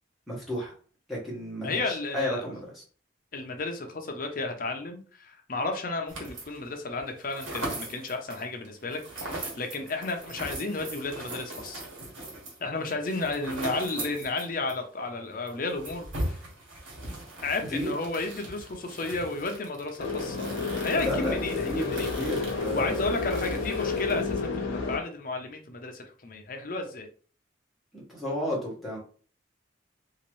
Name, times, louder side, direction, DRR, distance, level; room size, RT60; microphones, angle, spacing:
voice 1, 0.3-0.7 1.1-2.8 17.7-17.9 21.1-21.4 21.6-23.0 27.9-29.0, left 1 dB, ahead, -6 dB, 1.3 m, -32 dB
voice 2, 1.6-2.5 3.3-11.8 12.6-16.4 17.4-22.1 22.7-27.1, left 3 dB, 45° left, 4 dB, 0.6 m, -33 dB
sound 1, 6.1-6.7 7.0-14.8 15.1-15.2 15.5-24.5, right 1 dB, 90° right, 1.3 m, -40 dB
sound 2, 20.0-25.0, left 4 dB, 80° left, 0.7 m, -30 dB
2.9 x 2.9 x 3.0 m, 0.42 s
head